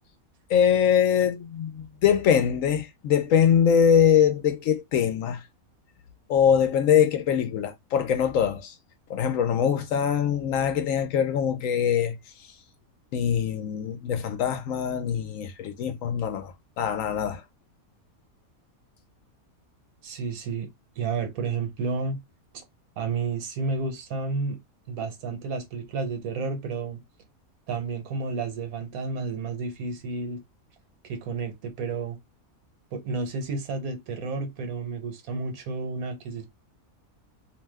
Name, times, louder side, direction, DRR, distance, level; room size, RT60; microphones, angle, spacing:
voice 1, 0.5-5.4 6.3-8.7 9.1-12.2 13.1-17.4, left 8 dB, 70° left, 0.9 m, -23 dB
voice 2, 20.0-20.7 21.0-22.2 22.5-22.6 23.0-24.6 24.9-27.0 27.7-30.4 31.0-32.2 32.9-36.5, right 4 dB, 75° right, 1.2 m, -31 dB
2.6 x 2.2 x 3.3 m
omnidirectional pair, 1.5 m